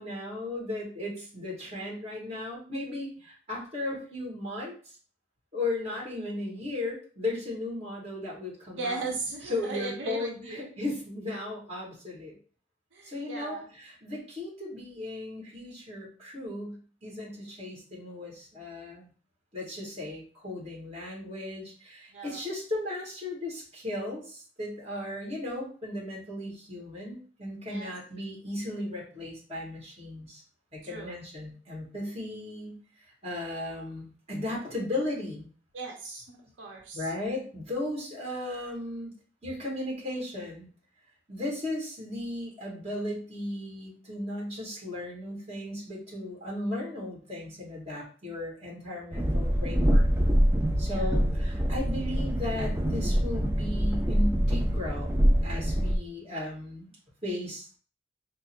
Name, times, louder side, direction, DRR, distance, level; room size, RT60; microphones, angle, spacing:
voice 1, 0.0-5.0 5.5-9.1 9.4-12.4 13.0-19.1 19.5-30.4 30.7-32.8 33.2-35.5 36.9-39.1 39.4-40.7 41.3-50.1 50.8-56.9 57.2-57.7, left 1 dB, 35° right, -4 dB, 1.6 m, -36 dB
voice 2, 8.8-10.8 12.9-13.7 22.1-22.4 27.7-27.9 30.8-31.1 35.7-37.1 50.9-51.2, right 3 dB, 90° right, 0 dB, 0.8 m, -37 dB
Train, 49.1-56.0, equal, 10° right, 0.3 m, -25 dB
3.8 x 2.0 x 4.2 m, 0.40 s
head